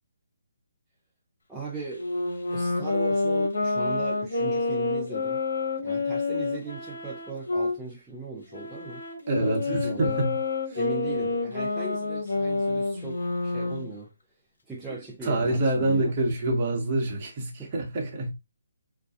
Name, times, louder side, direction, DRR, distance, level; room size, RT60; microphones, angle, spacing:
voice 1, 1.5-2.1 2.5-5.4 5.8-9.0 9.4-10.2 10.7-14.1 14.7-16.2 17.6-17.7, right 4 dB, 5° right, 0.4 m, -38 dB
Wind instrument woodwind instrument, 1.9-7.8 8.5-13.9, left 3 dB, 75° left, 1.0 m, -28 dB
voice 2, 9.3-10.3 10.7-10.8 15.2-18.3, right 2 dB, 30° right, 0.8 m, -26 dB
2.5 x 2.2 x 2.4 m
hypercardioid pair, 160°, 0 cm